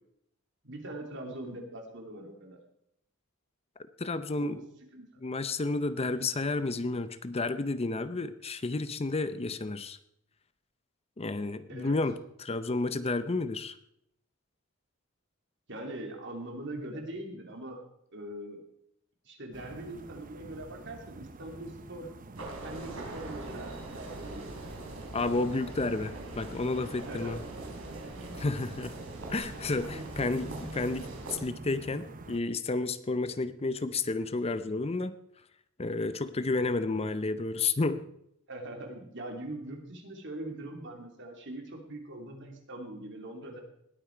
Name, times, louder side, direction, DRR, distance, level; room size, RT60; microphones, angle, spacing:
voice 1, 0.6-2.6 4.3-4.7 4.9-5.2 11.7-12.0 15.7-17.8 18.1-18.6 19.2-22.1 22.6-24.5 27.1-27.4 38.5-43.6, right 1 dB, 60° right, 2 dB, 2.9 m, -42 dB
voice 2, 4.0-4.6 5.2-10.0 11.2-13.8 25.1-27.4 28.4-28.9 29.3-35.1 35.8-38.0, left 3 dB, 30° left, 13 dB, 0.6 m, -31 dB
sound 1, 19.5-32.4, right 2 dB, 40° right, 0.8 m, -47 dB
sound 2, 22.4-31.4, right 2 dB, 80° right, 3.6 m, -42 dB
19.0 x 8.8 x 4.6 m, 0.74 s
head